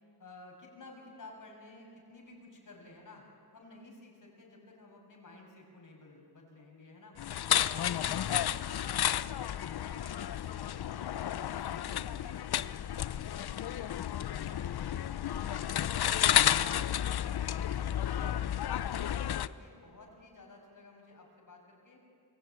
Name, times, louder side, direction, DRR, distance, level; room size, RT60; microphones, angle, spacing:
voice 1, 0.2-3.2 3.5-7.2 7.5-11.2 11.5-16.0 16.3-18.5 18.8-22.0, left 2 dB, 50° left, 0 dB, 6.2 m, -53 dB
sound 1, 7.2-19.5, left 11 dB, 65° left, 0.6 m, -31 dB
28.0 x 22.0 x 8.9 m, 2.4 s
wide cardioid pair, 160°, 41 cm